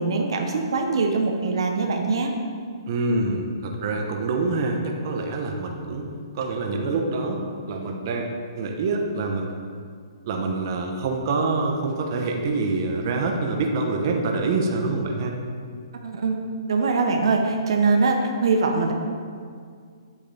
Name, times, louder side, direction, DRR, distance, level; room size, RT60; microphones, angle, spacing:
voice 1, 0.0-2.3 16.0-16.4 16.7-18.9, right 4 dB, 70° right, 2 dB, 1.0 m, -22 dB
voice 2, 2.9-6.1 6.3-7.4 7.7-9.5 10.3-15.3, right 3 dB, 45° right, 2 dB, 1.1 m, -26 dB
8.6 x 8.5 x 3.5 m, 2.1 s
hypercardioid pair, 155°, 3 cm